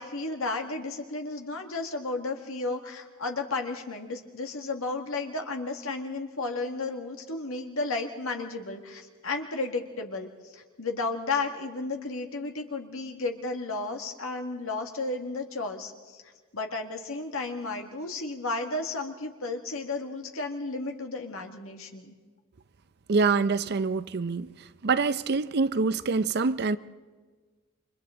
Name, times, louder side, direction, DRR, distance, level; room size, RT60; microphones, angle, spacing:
voice 1, 0.0-16.2 16.5-22.2, left 3 dB, 70° left, 1.9 m, -33 dB
voice 2, 23.1-24.5 24.8-26.8, right 4 dB, 50° right, 0.5 m, -25 dB
29.0 x 25.0 x 3.8 m
head